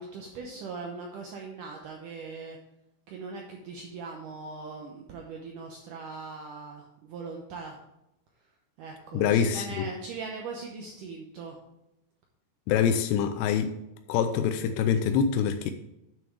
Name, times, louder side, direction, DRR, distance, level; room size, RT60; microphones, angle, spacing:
voice 1, 0.0-2.6 3.1-7.8 8.8-11.6, right 4 dB, 75° right, 0 dB, 1.9 m, -40 dB
voice 2, 9.1-9.9 12.7-13.8 14.1-15.7, left 7 dB, 85° left, 7 dB, 2.7 m, -25 dB
8.7 x 6.2 x 4.6 m, 0.87 s
omnidirectional pair, 4.7 m